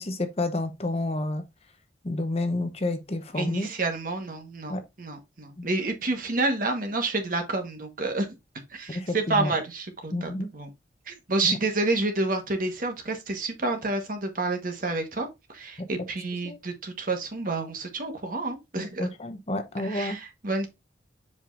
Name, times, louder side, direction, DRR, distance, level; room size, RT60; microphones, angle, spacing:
voice 1, 0.0-1.4 2.0-3.7 4.7-4.8 5.6-5.7 8.9-9.5 10.1-10.5 11.4-11.6 15.8-15.9 16.4-16.6 18.8-20.2, left 2 dB, 35° left, 0.8 m, -30 dB
voice 2, 3.3-8.3 8.7-10.7 11.1-15.3 15.5-19.1 19.8-20.7, right 2 dB, 50° right, 1.4 m, -29 dB
7.3 x 5.1 x 2.6 m
head